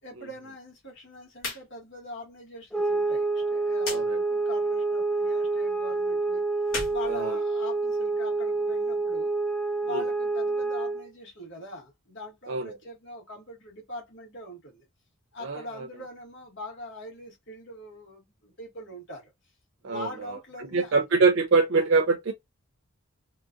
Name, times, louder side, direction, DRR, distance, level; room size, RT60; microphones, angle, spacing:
voice 1, 0.0-6.4 6.9-9.3 9.8-14.8 15.3-19.3 19.8-20.9, left 1 dB, 60° left, 1.7 m, -42 dB
sound 1, 1.3-1.7 2.0-2.1 3.8-4.0 6.6-7.9, left 3 dB, 80° left, 1.9 m, -36 dB
sound 2, 2.7-11.1, right 3 dB, 5° left, 0.3 m, -27 dB
voice 2, 3.9-4.2 7.1-7.3 9.9-10.0 12.5-12.8 15.4-15.9 19.8-20.3 20.7-22.3, right 4 dB, 65° right, 0.5 m, -24 dB
3.7 x 2.4 x 2.4 m
head